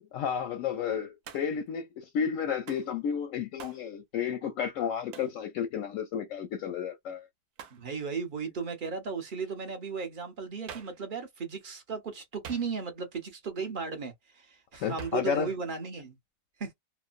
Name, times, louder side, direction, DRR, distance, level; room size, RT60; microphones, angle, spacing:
voice 1, 0.0-7.2 14.8-15.5, left 7 dB, 70° left, 0.8 m, -32 dB
Hands, 1.2-1.7 2.7-2.9 3.6-3.9 5.1-5.4 7.6-7.9 10.7-11.0 12.4-13.0 15.0-15.3, right 6 dB, 70° right, 1.1 m, -46 dB
voice 2, 7.7-16.2 16.6-16.7, right 5 dB, 50° right, 0.6 m, -36 dB
3.1 x 2.0 x 2.4 m
omnidirectional pair, 1.8 m